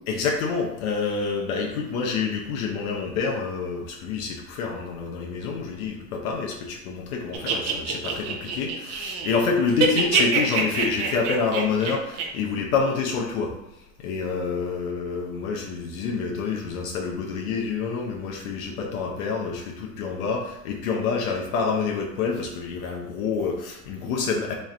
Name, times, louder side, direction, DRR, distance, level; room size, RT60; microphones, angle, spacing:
voice 1, 0.1-13.5 14.0-24.5, left 5 dB, 70° left, 0 dB, 0.8 m, -27 dB
sound 1, 7.3-9.4 9.7-12.2, right 5 dB, 35° right, 0.6 m, -25 dB
3.2 x 2.4 x 4.2 m, 0.88 s
supercardioid pair, 135°, 44 cm